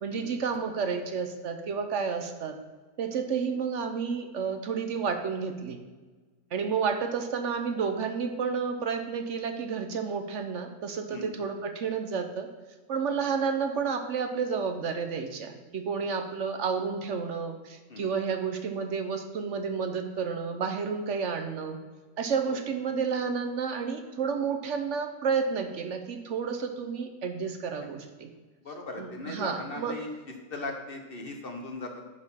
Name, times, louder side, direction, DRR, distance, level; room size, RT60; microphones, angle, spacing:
voice 1, 0.0-2.6 3.0-5.8 6.5-12.5 12.9-21.8 22.2-28.3 29.0-29.9, right 5 dB, 65° right, 6 dB, 1.0 m, -31 dB
voice 2, 28.6-30.1 30.5-32.1, left 2 dB, 45° left, 2 dB, 1.2 m, -39 dB
9.8 x 4.2 x 5.5 m, 1.3 s
omnidirectional pair, 1.4 m